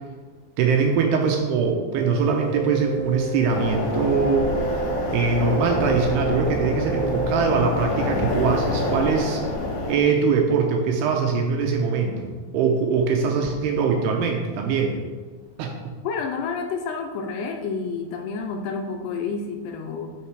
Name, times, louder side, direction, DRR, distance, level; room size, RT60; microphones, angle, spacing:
voice 1, 0.6-4.5 5.1-9.4 9.9-15.0 15.6-15.7, right 5 dB, 80° right, 2 dB, 2.5 m, -22 dB
sound 1, 1.9-8.1, right 3 dB, 40° left, 1.0 m, -31 dB
sound 2, 3.5-10.0, left 2 dB, 65° left, 3.1 m, -27 dB
voice 2, 16.0-20.1, left 5 dB, 80° left, 4 dB, 2.6 m, -29 dB
8.8 x 6.5 x 4.7 m, 1.4 s
omnidirectional pair, 5.2 m